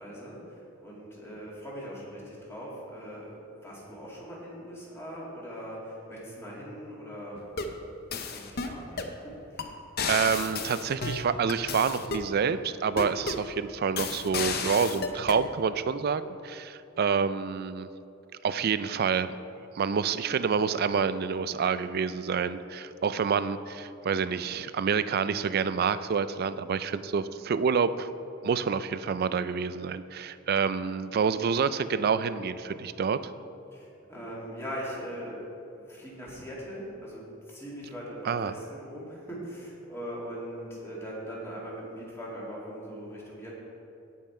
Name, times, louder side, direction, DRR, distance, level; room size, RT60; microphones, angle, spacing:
voice 1, 0.0-7.5 8.3-9.7 33.7-35.4 35.7-43.5, equal, 10° left, -5 dB, 2.4 m, -41 dB
sound 1, 7.4-7.8 8.1-9.2 9.6-9.7 10.0-12.3 13.0-13.5 14.0-15.4, left 5 dB, 50° left, 0.7 m, -33 dB
voice 2, 10.1-17.9 18.4-19.3 19.7-28.1 28.4-33.3 38.2-38.5, right 6 dB, 50° right, 13 dB, 0.4 m, -28 dB
16.5 x 5.6 x 4.4 m, 2.7 s
head